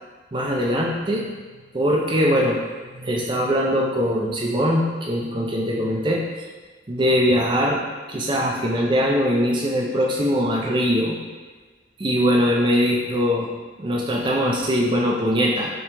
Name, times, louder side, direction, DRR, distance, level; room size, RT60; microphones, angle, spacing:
voice 1, 0.3-1.3 1.7-2.6 2.9-6.2 6.9-11.2 12.0-13.5 13.8-15.7, equal, 25° right, -2 dB, 0.4 m, -21 dB
2.9 x 2.8 x 3.4 m, 1.4 s
head